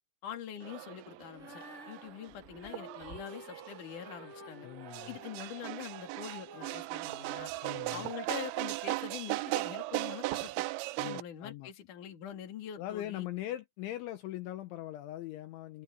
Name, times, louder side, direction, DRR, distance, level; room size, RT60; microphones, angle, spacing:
voice 1, 0.2-4.7 5.1-7.5 7.9-10.7 11.0-13.3, left 9 dB, 45° left, 3.4 m, -44 dB
sound 1, 0.6-11.2, right 20 dB, 85° right, 2.7 m, -38 dB
Female singing, 1.3-8.3, left 3 dB, 15° left, 5.2 m, -53 dB
voice 2, 4.6-5.2 7.6-8.1 11.0-11.7 12.8-15.8, left 13 dB, 75° left, 3.3 m, -41 dB
omnidirectional pair, 5.8 m